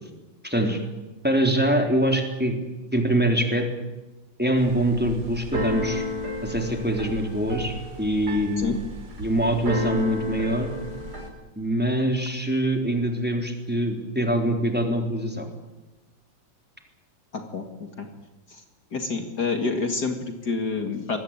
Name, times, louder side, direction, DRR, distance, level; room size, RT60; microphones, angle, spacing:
voice 1, 0.4-0.8 1.2-2.5 2.9-3.7 4.4-6.1 6.4-8.8 9.2-10.7 11.6-15.5, right 1 dB, 5° right, 3 dB, 3.7 m, -24 dB
Keyboard (musical), 4.6-11.3, left 1 dB, 50° right, 5.1 m, -32 dB
voice 2, 17.3-17.6 18.0-18.1 18.5-18.6 18.9-21.2, left 4 dB, 55° left, 5 dB, 2.7 m, -28 dB
25.5 x 21.0 x 9.0 m, 1.1 s
omnidirectional pair, 2.2 m